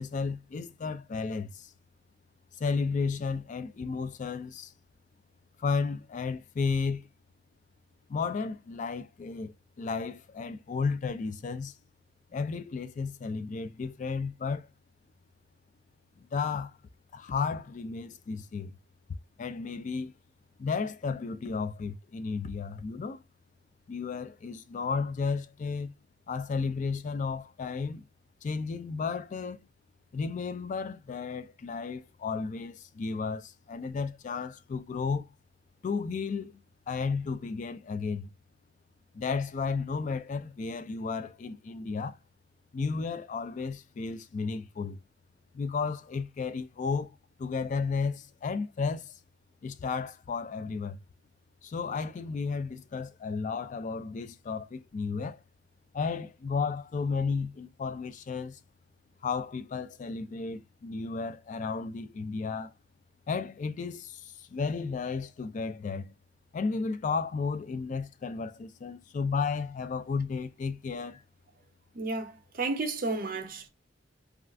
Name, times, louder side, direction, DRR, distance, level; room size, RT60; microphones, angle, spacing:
voice 1, 0.0-1.7 2.5-4.7 5.6-7.1 8.1-11.7 12.3-14.7 16.3-16.8 17.1-18.7 19.4-20.1 20.6-23.2 23.9-25.9 26.3-28.1 28.4-29.6 30.1-35.3 35.8-36.5 36.9-38.3 39.1-42.2 42.7-45.0 45.5-49.1 49.6-51.0 51.6-55.4 55.9-58.6 59.2-62.7 63.3-66.1 66.5-71.2, left 5 dB, 40° left, 0.3 m, -33 dB
voice 2, 71.9-73.7, right 3 dB, 50° right, 0.6 m, -32 dB
2.4 x 2.4 x 3.3 m
head